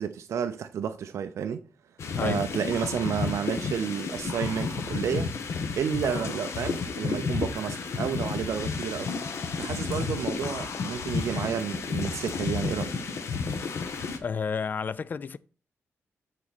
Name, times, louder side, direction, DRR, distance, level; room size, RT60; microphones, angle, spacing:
voice 1, 0.0-1.6 2.2-5.3 5.7-9.1 9.6-12.9, right 8 dB, 70° right, 0.4 m, -31 dB
sound 1, 2.0-14.2, left 5 dB, 65° left, 1.0 m, -31 dB
voice 2, 2.2-2.5 14.2-15.4, left 6 dB, 40° left, 0.3 m, -31 dB
8.7 x 4.1 x 4.0 m
wide cardioid pair, 150°, 5 cm